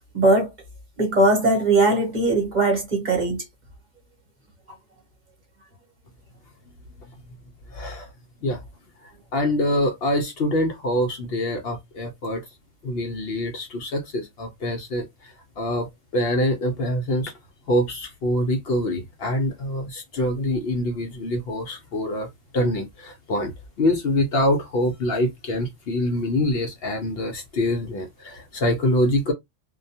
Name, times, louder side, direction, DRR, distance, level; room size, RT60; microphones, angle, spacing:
voice 1, 0.1-0.5 1.0-3.4, right 2 dB, 40° right, 0.9 m, -19 dB
voice 2, 7.7-8.1 8.4-8.6 9.0-12.5 12.8-17.3 17.7-23.5 23.8-29.3, left 1 dB, 60° left, 0.7 m, -25 dB
2.3 x 2.1 x 2.6 m
omnidirectional pair, 1.3 m